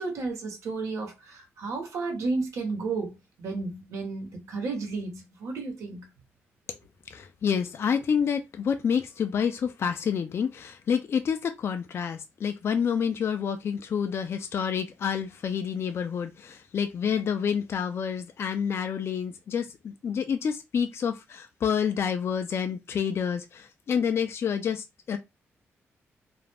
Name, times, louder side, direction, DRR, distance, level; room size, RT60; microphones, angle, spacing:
voice 1, 0.0-6.1, right 3 dB, 80° right, 1.0 m, -33 dB
voice 2, 7.1-25.2, left 7 dB, 55° left, 0.4 m, -28 dB
2.4 x 2.0 x 3.3 m
cardioid pair, 75°, 5 cm